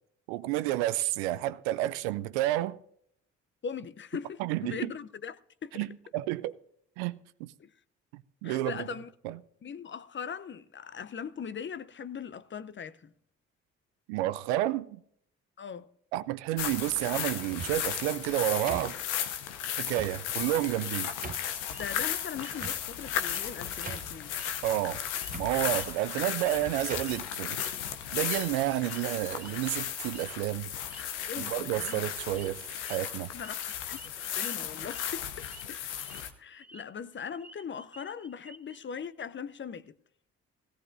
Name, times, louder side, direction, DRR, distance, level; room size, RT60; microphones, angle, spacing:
voice 1, 0.3-2.8 4.4-4.9 5.7-5.9 6.1-6.6 7.0-7.5 8.1-8.8 9.2-9.4 14.1-15.0 16.1-19.0 19.8-21.1 24.6-25.0 25.4-27.6 28.1-30.7 31.4-32.6 32.9-33.3, right 15 dB, 80° right, 0.5 m, -30 dB
voice 2, 3.6-5.8 7.6-7.7 8.4-9.1 9.6-13.1 15.6-15.9 21.8-24.3 31.3-32.0 33.3-34.0 34.4-36.1 36.4-40.0, left 7 dB, 35° left, 0.7 m, -40 dB
sound 1, 16.6-36.3, left 9 dB, 85° left, 0.8 m, -35 dB
sound 2, 17.4-18.0 18.7-19.3 19.9-20.2 20.7-20.8 21.2-21.6 22.6-23.1 23.5-23.6 23.9-24.3 25.3-25.5 26.3-26.5 26.9-27.2, right 6 dB, 25° right, 0.7 m, -42 dB
sound 3, 21.7-22.0 22.4-22.7 23.2-23.4 23.7-24.0 24.4-24.8 25.1-25.3 25.7-26.6 27.0-27.2 27.6-27.8 28.3-28.6 28.9-29.1 29.4-29.7 30.1-30.3 30.7-31.0 31.7-32.0 32.3-32.5 32.8-33.0 33.4-35.0 35.4-35.6 35.9-36.8 37.1-38.8, right 2 dB, 5° right, 2.0 m, -52 dB
17.0 x 16.5 x 2.7 m
hypercardioid pair, 45°, 33 cm